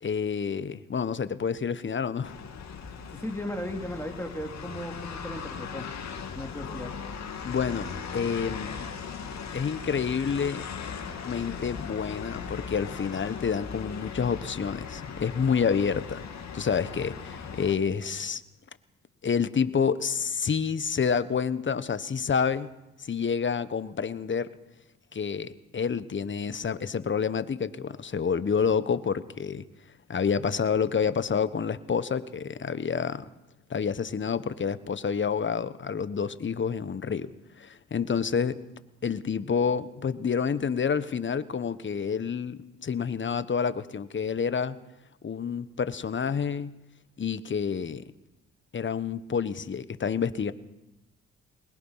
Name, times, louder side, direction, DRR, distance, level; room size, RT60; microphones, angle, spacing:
voice 1, 0.0-2.3 7.4-8.9 9.5-10.6 11.2-16.2 16.5-18.4 19.2-22.7 23.0-24.5 25.1-29.6 30.1-33.3 33.7-37.3 37.6-38.6 39.0-44.8 45.2-46.7 47.2-48.0 48.7-50.5, left 6 dB, 40° left, 14 dB, 1.3 m, -28 dB
sound 1, 2.2-17.7, left 6 dB, 60° left, 3.0 m, -38 dB
voice 2, 3.1-5.9 6.3-6.9, left 1 dB, 10° left, 2 dB, 3.3 m, -36 dB
23.0 x 20.5 x 5.8 m, 0.95 s
supercardioid pair, 60°, 30 cm